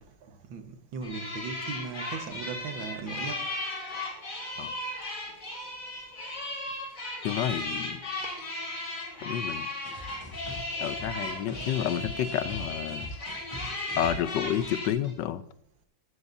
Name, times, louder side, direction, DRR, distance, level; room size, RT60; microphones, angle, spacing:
voice 1, 0.3-3.4, right 5 dB, 85° right, 6 dB, 2.0 m, -38 dB
sound 1, 1.0-14.9, left 2 dB, 45° left, 3.1 m, -36 dB
voice 2, 7.2-8.0 9.2-9.7 10.8-13.1 14.0-15.4, left 10 dB, 75° left, 13 dB, 1.3 m, -30 dB
sound 2, 9.8-15.2, equal, 15° right, 2.3 m, -43 dB
15.5 x 13.0 x 2.7 m, 0.72 s
omnidirectional pair, 2.0 m